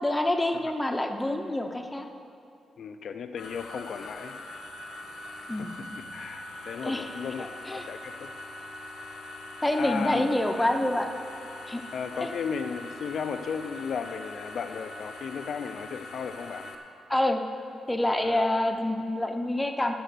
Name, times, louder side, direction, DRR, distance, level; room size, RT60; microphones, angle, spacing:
voice 1, 0.0-2.1 5.5-5.7 6.8-7.1 7.4-7.9 9.6-11.1 11.7-11.8 12.2-12.3 17.1-17.4 17.9-19.9, left 1 dB, 10° left, 5 dB, 0.6 m, -27 dB
voice 2, 2.8-4.4 5.8-8.3 9.8-10.2 11.9-16.7 18.2-18.5, left 6 dB, 60° left, 8 dB, 0.4 m, -35 dB
sound 1, 3.4-16.7, left 2 dB, 85° left, 1.0 m, -42 dB
13.0 x 6.2 x 6.7 m, 2.5 s
wide cardioid pair, 165°, 0 cm